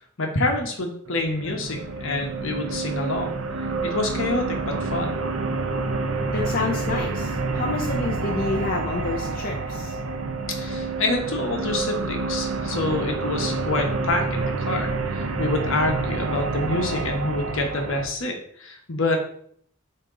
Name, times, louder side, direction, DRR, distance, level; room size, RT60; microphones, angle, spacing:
voice 1, 0.2-3.4 3.8-5.2 10.6-19.2, left 2 dB, 65° left, 3 dB, 1.2 m, -27 dB
sound 1, 1.1-18.1, right 3 dB, 75° right, 0.7 m, -28 dB
voice 2, 6.3-10.0, left 3 dB, 45° left, -1 dB, 0.6 m, -28 dB
8.6 x 2.9 x 3.7 m, 0.64 s
head